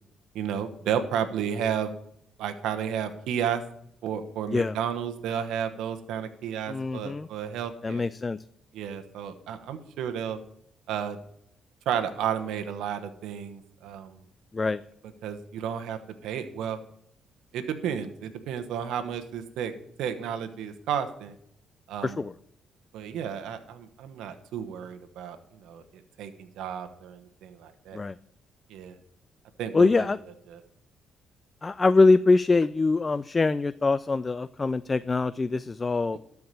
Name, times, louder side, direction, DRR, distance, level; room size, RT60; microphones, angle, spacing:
voice 1, 0.3-1.9 2.4-3.6 4.0-8.1 8.7-10.4 10.9-11.2 11.8-14.2 15.2-16.8 17.5-19.7 20.0-21.4 21.9-22.2 22.9-28.0 28.7-28.9 29.6-30.1 30.5-30.6, right 8 dB, 85° right, 7 dB, 1.0 m, -32 dB
voice 2, 6.7-7.3 7.8-8.4 14.5-14.8 22.0-22.3 27.9-28.1 29.7-30.2 31.6-36.2, left 3 dB, 25° left, 16 dB, 0.3 m, -23 dB
12.5 x 4.7 x 6.8 m, 0.71 s
cardioid pair, 90°, 0 cm